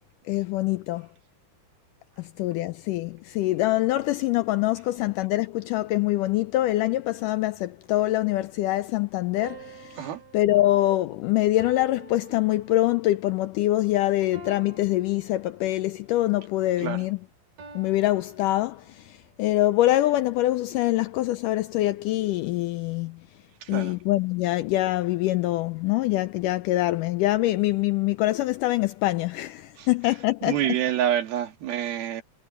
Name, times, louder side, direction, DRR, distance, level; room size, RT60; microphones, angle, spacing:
voice 1, 0.3-1.1 2.2-10.1 10.3-17.2 17.8-23.2 23.7-30.6, left 16 dB, 85° left, 1.9 m, -24 dB
sound 1, 9.4-13.2 14.3-15.9 17.6-19.1, right 6 dB, 60° right, 5.9 m, -48 dB
voice 2, 23.6-23.9 29.8-29.9 30.4-32.2, right 11 dB, 85° right, 3.8 m, -27 dB
omnidirectional pair, 4.2 m